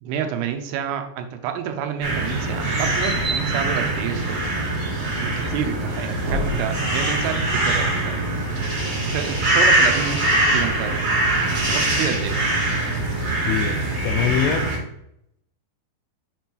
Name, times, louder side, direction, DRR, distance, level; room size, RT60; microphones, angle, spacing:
voice 1, 0.0-4.7 5.2-8.2 9.1-11.0 11.6-12.4, right 8 dB, 85° right, 6 dB, 3.3 m, -29 dB
sound 1, 2.0-14.8, right 2 dB, 50° right, 1.7 m, -23 dB
sound 2, 6.2-7.8 11.7-12.7, left 2 dB, 70° right, 2.0 m, -34 dB
voice 2, 13.5-14.7, left 9 dB, 85° left, 7 dB, 3.0 m, -24 dB
7.4 x 5.3 x 3.1 m, 0.77 s
omnidirectional pair, 5.9 m